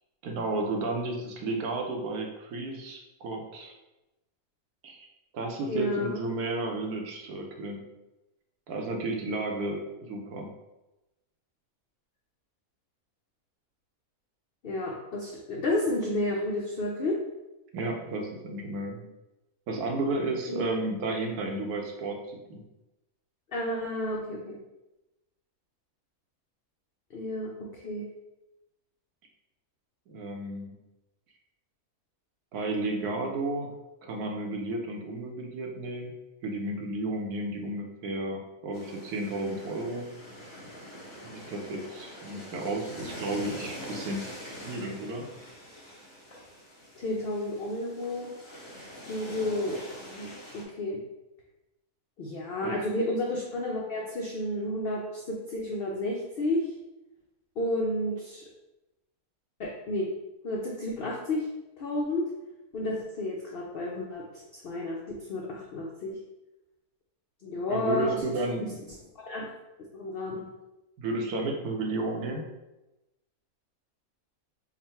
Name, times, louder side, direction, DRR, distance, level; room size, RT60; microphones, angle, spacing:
voice 1, 0.2-3.7 4.8-5.1 5.3-7.8 8.7-10.5 17.7-19.0 19.7-22.6 30.1-30.7 32.5-33.7 34.0-36.1 36.4-40.1 41.2-44.2 44.6-45.3 52.6-52.7 67.7-68.9 71.0-72.4, right 2 dB, 80° right, 2 dB, 1.2 m, -32 dB
voice 2, 5.7-6.2 14.6-17.2 20.5-20.7 23.5-24.6 27.1-28.1 42.6-42.7 47.0-48.3 49.0-49.8 50.1-51.0 52.2-56.7 57.6-58.4 59.6-60.1 60.4-61.5 61.8-62.3 62.7-66.2 67.4-68.2 68.6-68.7 69.2-69.5 69.9-70.5, left 1 dB, 75° left, -2 dB, 0.5 m, -31 dB
sound 1, 38.7-50.6, equal, 25° left, 0.8 m, -44 dB
3.7 x 2.2 x 4.2 m, 0.99 s
omnidirectional pair, 1.6 m